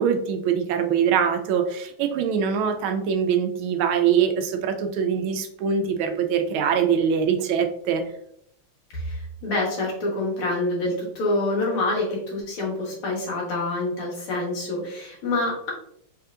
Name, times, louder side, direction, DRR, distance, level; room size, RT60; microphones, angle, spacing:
voice 1, 0.0-8.0, right 7 dB, 80° right, 6 dB, 1.3 m, -23 dB
voice 2, 8.9-15.7, left 2 dB, 85° left, -3 dB, 2.3 m, -26 dB
4.5 x 3.4 x 2.4 m, 0.71 s
omnidirectional pair, 2.4 m